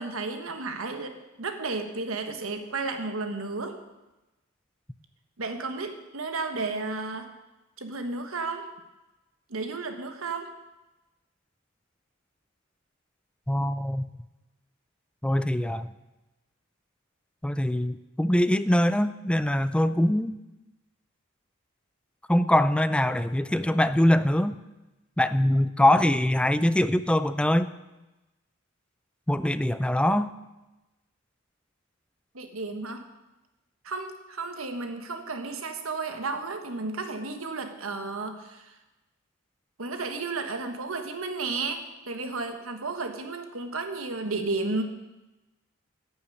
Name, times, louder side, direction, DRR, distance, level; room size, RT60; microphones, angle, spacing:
voice 1, 0.0-3.8 5.4-7.3 7.8-8.7 9.5-10.5 32.3-33.0 33.8-38.7 39.8-44.8, right 3 dB, 85° right, 6 dB, 1.4 m, -33 dB
voice 2, 13.5-14.1 15.2-15.9 17.4-20.3 22.3-24.6 25.2-27.7 29.3-30.3, left 1 dB, 5° left, 13 dB, 0.4 m, -23 dB
10.5 x 7.1 x 8.1 m, 1.0 s
head